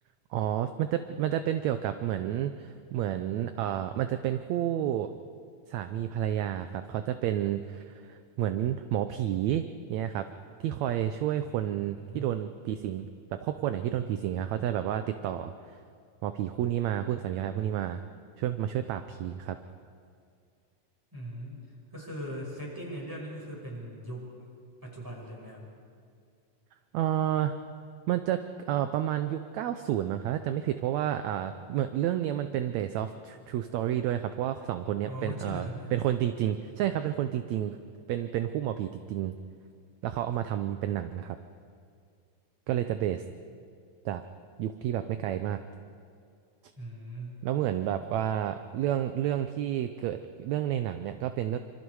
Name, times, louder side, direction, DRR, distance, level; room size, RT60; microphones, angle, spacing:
voice 1, 0.3-5.1 5.7-10.3 10.6-15.8 16.2-18.0 18.4-19.6 26.9-27.6 28.1-37.8 38.1-39.4 40.0-41.4 42.7-43.2 44.1-44.2 44.6-45.6 47.4-51.6, right 11 dB, 75° right, 9 dB, 1.8 m, -30 dB
voice 2, 11.9-12.3 21.1-21.6 21.9-24.4 24.8-25.7 35.1-35.9 46.8-47.4, equal, 5° right, -3 dB, 5.4 m, -39 dB
26.0 x 26.0 x 4.8 m, 2.3 s
omnidirectional pair, 3.6 m